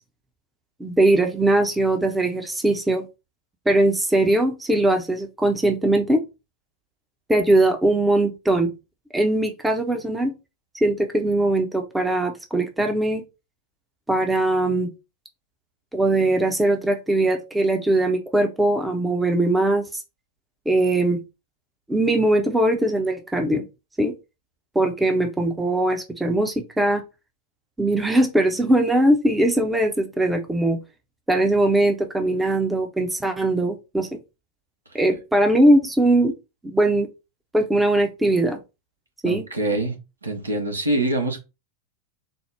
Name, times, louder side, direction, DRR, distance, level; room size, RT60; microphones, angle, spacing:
voice 1, 0.8-3.0 3.7-6.2 7.3-8.7 9.1-10.3 10.8-13.2 14.1-14.9 15.9-20.0 20.7-21.2 21.9-23.6 24.0-24.1 24.7-27.0 27.8-30.8 31.3-34.2 34.9-36.3 36.6-37.1 37.5-38.6 39.2-39.5, right 1 dB, 5° right, 0.6 m, -20 dB
voice 2, 39.2-39.9 40.2-41.4, right 2 dB, 80° right, 0.9 m, -24 dB
4.2 x 2.0 x 3.3 m
figure-of-eight pair, 90°, 0 cm